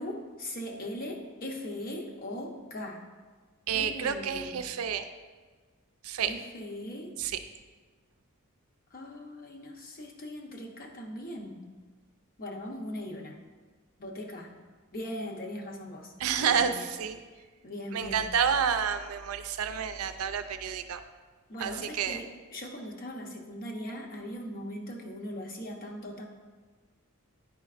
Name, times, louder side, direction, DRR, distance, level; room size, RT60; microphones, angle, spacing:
voice 1, 0.0-3.0 3.7-4.6 6.3-7.1 8.9-11.6 12.4-13.4 14.0-14.5 14.9-16.1 16.4-16.9 17.6-18.3 21.5-26.2, left 1 dB, 40° left, 1 dB, 0.8 m, -39 dB
voice 2, 3.7-5.1 6.0-6.3 7.2-7.3 16.2-17.2 17.9-21.0 21.6-22.2, right 7 dB, 80° right, 9 dB, 0.4 m, -29 dB
9.6 x 5.1 x 2.5 m, 1.4 s
head